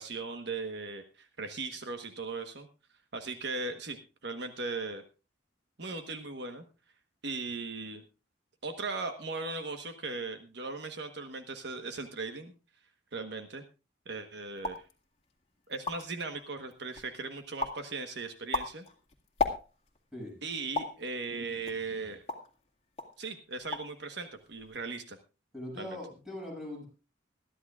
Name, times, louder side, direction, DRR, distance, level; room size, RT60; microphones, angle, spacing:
voice 1, 0.0-2.7 3.1-5.0 5.8-6.6 7.2-8.0 8.6-12.5 13.1-13.6 14.1-14.8 15.7-18.8 20.4-22.2 23.2-25.2 25.8-26.0, right 3 dB, 60° right, 6 dB, 1.3 m, -38 dB
sound 1, 14.6-14.9 15.4-15.5 15.7-16.2 16.7-17.2 17.6-17.9 18.3-20.0 20.7-21.0 21.7-22.6 23.0-23.2 23.5-24.0 24.2-24.7, left 4 dB, 35° left, 2.0 m, -35 dB
voice 2, 20.1-20.4 25.5-26.9, left 1 dB, 5° right, -2 dB, 7.2 m, -41 dB
21.5 x 13.0 x 2.4 m, 0.30 s
head